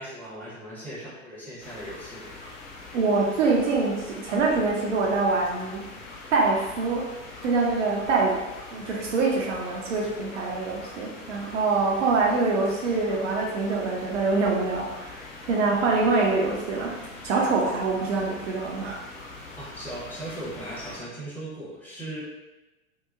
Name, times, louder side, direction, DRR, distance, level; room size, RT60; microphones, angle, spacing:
voice 1, 0.0-2.3 19.6-22.2, right 1 dB, 5° left, -10 dB, 0.9 m, -38 dB
sound 1, 1.6-21.0, left 2 dB, 40° left, 1.0 m, -43 dB
voice 2, 2.9-5.8 6.3-7.1 7.4-8.3 8.7-16.9 17.2-19.0, right 3 dB, 60° right, -1 dB, 0.6 m, -25 dB
2.7 x 2.1 x 2.4 m, 1.1 s
figure-of-eight pair, 90°, 41 cm